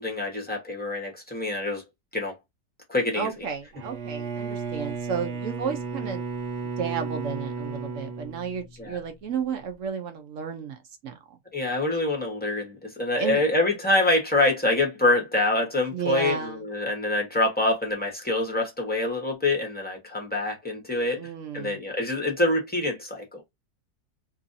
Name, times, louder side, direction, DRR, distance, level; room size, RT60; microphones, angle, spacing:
voice 1, 0.0-1.8 2.1-2.3 2.9-3.3 8.8-9.0 11.5-21.2 21.5-23.4, left 2 dB, 5° left, 0.8 m, -25 dB
voice 2, 3.1-6.3 6.8-11.4 13.2-13.4 15.9-16.6 21.2-21.8, right 7 dB, 65° right, 0.8 m, -32 dB
Bowed string instrument, 3.7-9.1, right 4 dB, 50° right, 1.1 m, -34 dB
3.0 x 2.6 x 2.6 m
omnidirectional pair, 1.9 m